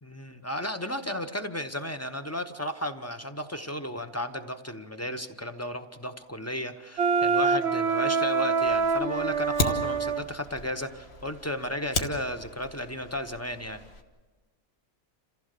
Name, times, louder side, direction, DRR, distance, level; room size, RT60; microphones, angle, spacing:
voice 1, 0.0-13.8, left 1 dB, 15° left, 8 dB, 0.7 m, -34 dB
Wind instrument woodwind instrument, 7.0-10.2, right 5 dB, 55° right, 1.0 m, -25 dB
Fire, 8.7-14.0, left 2 dB, 45° left, 1.5 m, -36 dB
28.5 x 15.5 x 6.7 m, 1.3 s
omnidirectional pair, 1.5 m